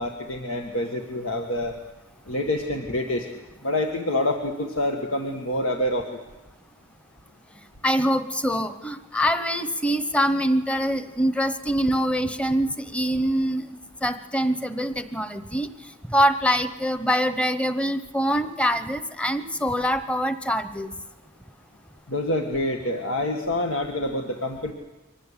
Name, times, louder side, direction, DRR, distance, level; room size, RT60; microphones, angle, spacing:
voice 1, 0.0-1.7 2.3-3.3 3.6-6.1 22.1-24.7, left 1 dB, 85° left, 3 dB, 1.8 m, -27 dB
voice 2, 7.8-13.6 14.0-15.7 16.1-20.9, equal, 5° left, 10 dB, 1.0 m, -24 dB
24.0 x 19.0 x 8.3 m, 1.1 s
head